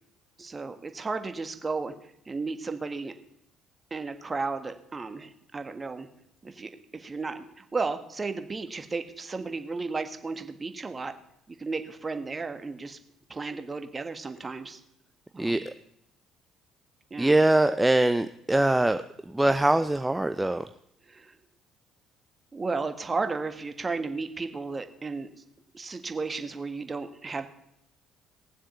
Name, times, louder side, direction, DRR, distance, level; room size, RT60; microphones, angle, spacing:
voice 1, 0.4-1.9 2.2-3.1 3.9-6.1 6.4-11.1 11.5-13.0 13.3-14.8 15.3-15.7 17.1-17.3 21.1-21.3 22.5-25.3 25.7-27.5, right 4 dB, 30° right, 8 dB, 1.6 m, -34 dB
voice 2, 15.4-15.7 17.2-19.0 19.3-20.7, right 1 dB, 10° right, 10 dB, 0.6 m, -23 dB
18.5 x 7.4 x 7.0 m, 0.77 s
hypercardioid pair, 50°, 0 cm